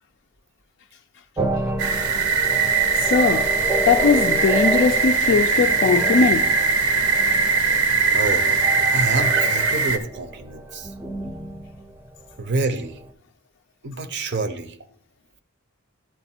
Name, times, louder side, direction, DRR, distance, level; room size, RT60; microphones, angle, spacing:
sound 1, 1.4-12.8, right 1 dB, 10° right, 0.4 m, -30 dB
sound 2, 1.8-10.0, right 4 dB, 80° right, 0.9 m, -21 dB
voice 1, 3.0-3.6 3.8-6.5, left 5 dB, 55° left, 0.3 m, -20 dB
voice 2, 8.1-10.9 12.4-13.0 13.8-14.8, right 3 dB, 50° right, 0.6 m, -27 dB
11.5 x 3.9 x 4.3 m
head